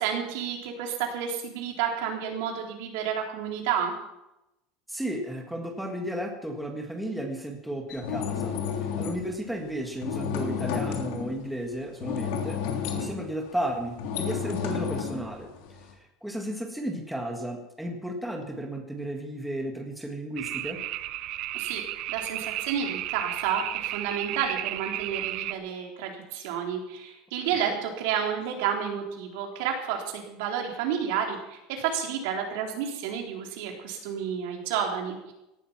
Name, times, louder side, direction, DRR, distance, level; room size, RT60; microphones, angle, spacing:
voice 1, 0.0-3.9 21.5-21.8 22.1-35.3, right 8 dB, 70° right, 1 dB, 4.0 m, -30 dB
voice 2, 4.9-8.6 9.0-12.6 12.9-15.5 16.2-20.8, right 1 dB, ahead, 2 dB, 1.7 m, -33 dB
sound 1, 7.9-9.2 10.0-11.4 12.0-15.9, left 7 dB, 65° left, 3.2 m, -31 dB
sound 2, 20.4-25.5, right 15 dB, 45° right, 0.6 m, -33 dB
17.5 x 12.5 x 5.9 m, 0.90 s
cardioid pair, 175°, 0 cm